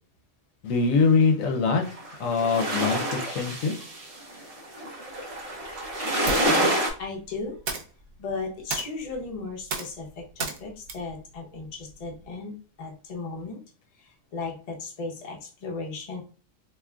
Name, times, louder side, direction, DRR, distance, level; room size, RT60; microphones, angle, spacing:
voice 1, 0.6-1.8 2.2-3.7, left 4 dB, 75° left, 3 dB, 1.0 m, -23 dB
sound 1, 1.8-6.9, right 1 dB, 40° right, 0.5 m, -27 dB
sound 2, 5.1-12.3, right 4 dB, 90° right, 1.1 m, -38 dB
voice 2, 7.0-7.8 8.2-13.6 14.0-16.2, left 3 dB, 35° left, 0 dB, 0.7 m, -36 dB
3.6 x 2.8 x 2.2 m, 0.39 s
omnidirectional pair, 1.4 m